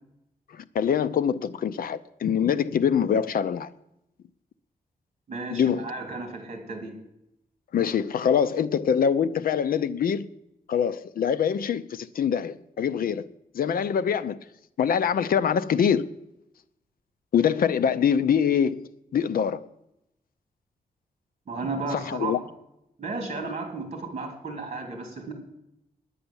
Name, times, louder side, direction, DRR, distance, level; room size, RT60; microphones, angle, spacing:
voice 1, 0.5-3.7 5.5-5.9 7.7-10.3 10.7-13.3 13.5-14.4 14.8-16.1 17.3-19.7 21.9-22.4, left 7 dB, 70° left, 0.6 m, -24 dB
voice 2, 5.3-6.9 21.5-22.3 23.0-25.3, right 3 dB, 45° right, 3.1 m, -33 dB
10.0 x 9.1 x 7.0 m
wide cardioid pair, 175°, 15 cm